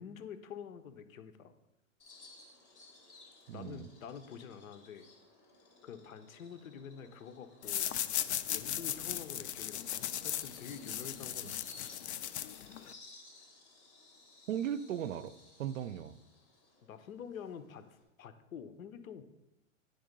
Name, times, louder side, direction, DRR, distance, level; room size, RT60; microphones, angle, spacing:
voice 1, 0.0-1.5 3.5-5.1 5.8-7.9 8.5-11.6 16.8-19.2, left 7 dB, 80° left, 10 dB, 0.9 m, -47 dB
Bird vocalization bird call bird song, 2.0-18.0, left 2 dB, 15° left, 0.7 m, -59 dB
voice 2, 3.5-3.9 11.4-11.5 14.5-15.3 15.6-16.1, right 9 dB, 70° right, 15 dB, 0.5 m, -37 dB
sound 1, 7.6-12.9, left 11 dB, 55° left, 0.5 m, -37 dB
9.5 x 3.8 x 5.2 m, 0.92 s
hypercardioid pair, 180°, 40 cm